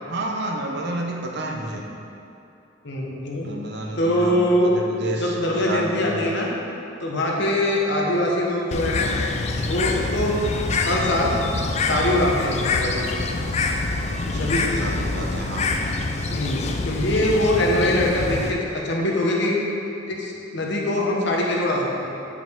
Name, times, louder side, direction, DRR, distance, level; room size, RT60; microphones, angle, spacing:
voice 1, 0.0-1.8 3.4-6.3 14.2-15.7, right 1 dB, 55° right, 1 dB, 0.7 m, -30 dB
voice 2, 2.8-3.5 4.0-4.8 5.2-6.5 7.0-9.1 9.7-10.3 10.8-11.3 11.8-13.2 14.3-14.8 16.3-19.6 20.0-22.1, left 1 dB, 60° left, -2 dB, 1.0 m, -23 dB
Bird, 8.7-18.5, left 3 dB, 35° left, 0.4 m, -25 dB
7.9 x 4.9 x 3.6 m, 2.8 s
head